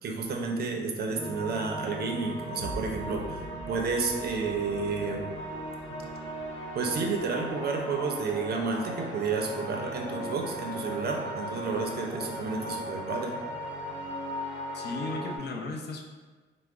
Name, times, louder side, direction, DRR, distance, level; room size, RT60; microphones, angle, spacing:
voice 1, 0.0-5.2 6.7-13.4, right 4 dB, 55° right, 2 dB, 0.5 m, -31 dB
sound 1, 1.1-15.4, equal, 90° left, 0.8 m, -38 dB
sound 2, 1.3-14.4, right 1 dB, 15° left, 1.4 m, -50 dB
sound 3, 2.6-8.6, left 1 dB, 15° right, 0.8 m, -46 dB
voice 2, 14.7-16.0, left 2 dB, 55° left, 1 dB, 0.5 m, -35 dB
4.5 x 2.0 x 2.4 m, 1.3 s
cardioid pair, 90°, 20 cm